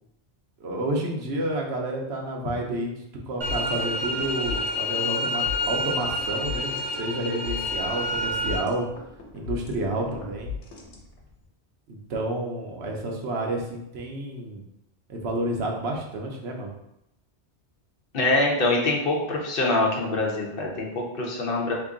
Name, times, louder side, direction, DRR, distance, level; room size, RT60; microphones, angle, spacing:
voice 1, 0.6-8.9 9.3-10.5 11.9-14.6 15.1-16.8, right 1 dB, 75° right, 0 dB, 1.0 m, -30 dB
sound 1, 3.4-8.6, left 1 dB, 45° right, 0.7 m, -28 dB
sound 2, 3.5-11.4, left 6 dB, 85° left, 1.0 m, -38 dB
voice 2, 18.1-21.7, left 2 dB, 60° left, -1 dB, 0.9 m, -24 dB
2.9 x 2.6 x 3.6 m, 0.82 s
omnidirectional pair, 1.1 m